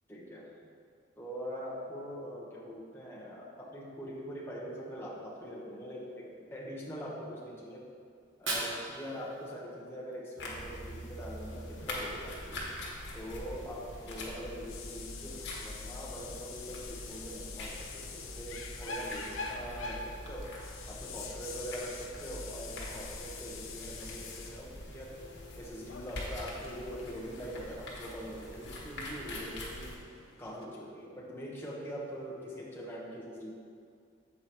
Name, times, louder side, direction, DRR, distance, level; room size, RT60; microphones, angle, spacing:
voice 1, 0.1-0.5 1.2-7.9 8.4-12.7 13.1-20.5 20.9-25.2 25.6-30.0 30.4-33.5, equal, 10° left, -5 dB, 1.0 m, -43 dB
Fire, 8.1-10.2, right 2 dB, 60° right, 1.2 m, -39 dB
sound 1, 10.4-30.0, left 1 dB, 55° left, 1.3 m, -44 dB
sound 2, 11.5-30.7, left 4 dB, 80° left, 0.7 m, -47 dB
7.4 x 4.7 x 4.5 m, 2.3 s
head